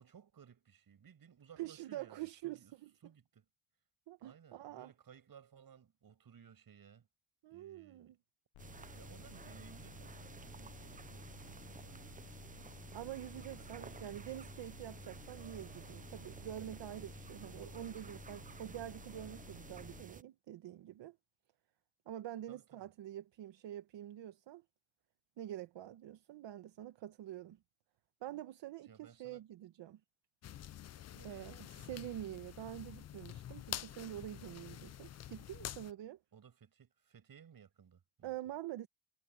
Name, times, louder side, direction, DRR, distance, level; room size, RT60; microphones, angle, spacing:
voice 1, 0.0-2.7 3.0-3.5 4.2-7.1 7.5-8.1 8.9-12.7 13.4-14.1 22.5-22.9 28.8-29.4 31.1-31.5 36.3-38.4, right 7 dB, 50° right, 6.4 m, -60 dB
voice 2, 1.6-2.9 4.1-4.9 7.4-8.1 12.9-21.2 22.1-24.6 25.4-27.6 28.2-30.0 31.2-36.2 38.2-38.9, right 13 dB, 70° right, 1.2 m, -46 dB
sound 1, 8.5-20.0, left 17 dB, 80° left, 0.9 m, -56 dB
sound 2, 8.6-20.2, right 5 dB, 20° right, 0.6 m, -52 dB
sound 3, 30.4-35.9, left 11 dB, 35° left, 0.5 m, -47 dB
cardioid pair, 100°, 46 cm